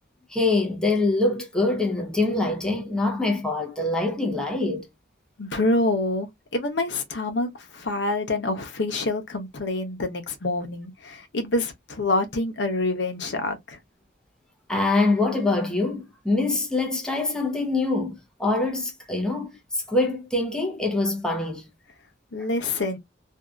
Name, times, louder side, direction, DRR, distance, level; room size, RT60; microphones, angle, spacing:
voice 1, 0.3-4.9 14.7-21.7, left 2 dB, 5° left, 0.6 m, -24 dB
voice 2, 5.4-6.3 6.5-13.8 22.3-23.0, left 2 dB, 90° left, 0.8 m, -26 dB
2.7 x 2.3 x 2.3 m
head